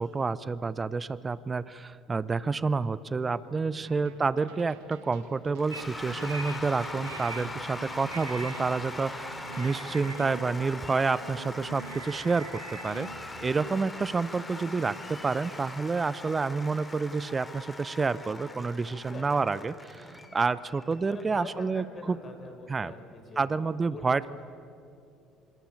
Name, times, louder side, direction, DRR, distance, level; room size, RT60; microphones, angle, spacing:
voice 1, 0.0-20.1 20.3-22.2 22.7-22.9 23.4-24.3, right 4 dB, 25° right, 18 dB, 0.8 m, -29 dB
sound 1, 3.8-12.4, right 7 dB, 65° right, 2.1 m, -54 dB
Cheering / Applause / Crowd, 5.6-21.2, left 2 dB, 15° left, 3.4 m, -41 dB
sound 2, 5.7-15.6, right 3 dB, 85° right, 1.5 m, -45 dB
voice 2, 19.0-19.3 19.9-20.4 21.0-23.5 23.9-24.3, left 3 dB, 35° left, 6 dB, 5.0 m, -45 dB
26.0 x 26.0 x 8.7 m, 2.6 s
figure-of-eight pair, 55°, 0 cm